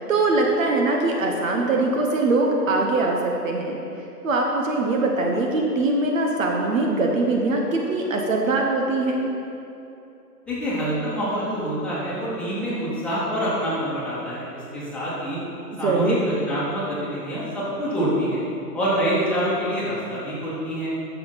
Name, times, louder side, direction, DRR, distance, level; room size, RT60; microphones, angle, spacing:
voice 1, 0.0-3.8 4.2-9.3 15.8-16.2, right 2 dB, 55° right, 1 dB, 1.1 m, -22 dB
voice 2, 10.5-15.4 15.8-18.4 18.7-20.9, equal, ahead, -10 dB, 2.1 m, -26 dB
10.5 x 6.9 x 4.1 m, 2.8 s
figure-of-eight pair, 130°, 47 cm